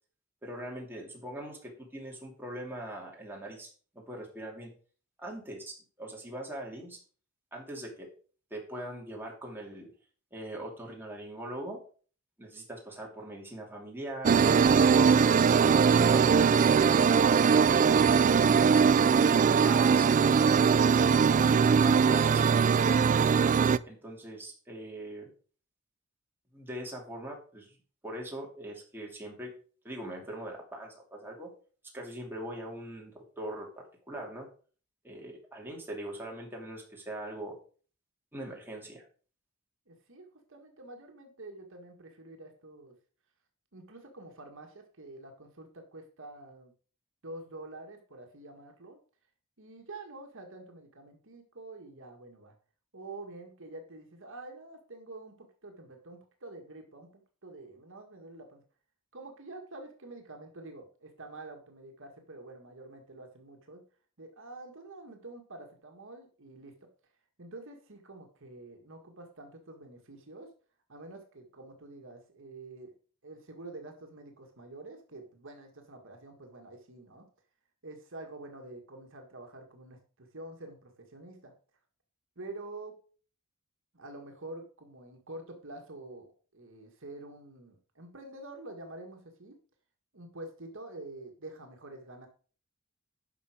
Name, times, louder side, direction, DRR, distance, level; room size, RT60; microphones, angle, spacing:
voice 1, 0.4-3.7 3.9-4.7 5.2-7.0 7.5-8.1 8.5-9.9 10.3-11.8 12.4-15.6 19.4-23.0 23.8-25.3 26.5-27.8 28.0-29.5 29.8-31.5 31.9-34.5 35.0-37.6 38.3-39.1, right 1 dB, 10° right, -1 dB, 2.7 m, -42 dB
sound 1, 14.2-23.8, right 6 dB, 35° right, 0.3 m, -21 dB
voice 2, 39.9-42.9 43.7-46.7 47.2-49.0 49.6-52.5 52.9-58.6 59.1-63.8 64.2-66.7 67.4-70.5 70.9-72.9 73.2-77.3 77.8-81.5 82.4-82.9 83.9-89.6 90.1-92.3, right 2 dB, 65° right, 4 dB, 1.7 m, -47 dB
11.0 x 5.9 x 5.0 m, 0.41 s
head